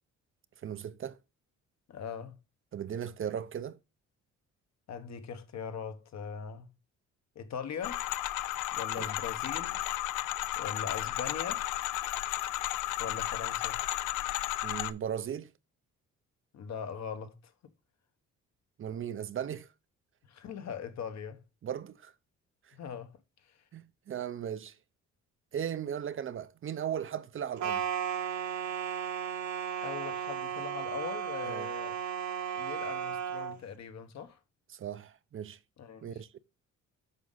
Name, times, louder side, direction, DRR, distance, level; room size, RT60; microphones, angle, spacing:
voice 1, 0.6-1.2 2.7-3.8 9.0-9.1 14.6-15.5 18.8-19.7 21.6-22.1 22.7-22.8 23.7-24.8 25.5-27.8 31.4-31.7 34.7-35.6 36.0-36.4, right 9 dB, 45° right, 0.6 m, -37 dB
voice 2, 1.9-2.4 4.9-6.7 7.3-8.0 8.7-9.9 10.6-11.6 13.0-13.8 16.5-17.7 20.3-21.4 22.7-23.2 23.4-23.6 29.8-31.9 32.5-34.4 35.8-36.2, left 7 dB, 65° left, 1.2 m, -41 dB
sound 1, 7.8-14.9, left 15 dB, 90° left, 0.5 m, -33 dB
sound 2, 27.6-33.6, right 8 dB, 65° right, 1.1 m, -35 dB
8.0 x 5.1 x 4.0 m
cardioid pair, 90°, 30 cm